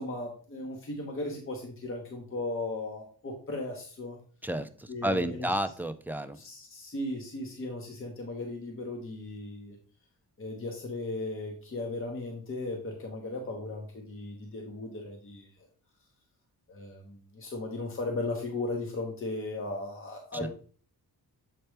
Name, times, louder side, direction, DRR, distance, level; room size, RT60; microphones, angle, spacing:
voice 1, 0.0-4.2 4.9-5.5 6.3-9.8 10.4-15.7 16.7-20.5, left 2 dB, 30° left, 1 dB, 1.1 m, -36 dB
voice 2, 4.4-6.4 20.4-20.5, right 1 dB, 5° right, 9 dB, 0.3 m, -31 dB
7.7 x 4.4 x 3.3 m, 0.43 s
wide cardioid pair, 140°, 40 cm